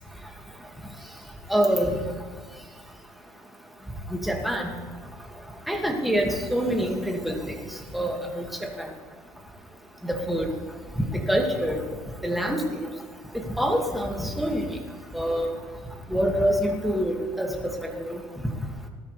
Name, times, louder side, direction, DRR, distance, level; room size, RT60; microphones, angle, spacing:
voice 1, 1.5-2.0 4.1-4.7 5.7-7.6 7.9-8.5 8.8-8.9 10.0-10.5 11.0-11.8 12.2-12.6 13.3-14.7 15.1-15.6 16.1-18.2, equal, ahead, 1 dB, 2.2 m, -26 dB
19.0 x 13.0 x 3.4 m, 1.5 s
cardioid pair, 105°, 9 cm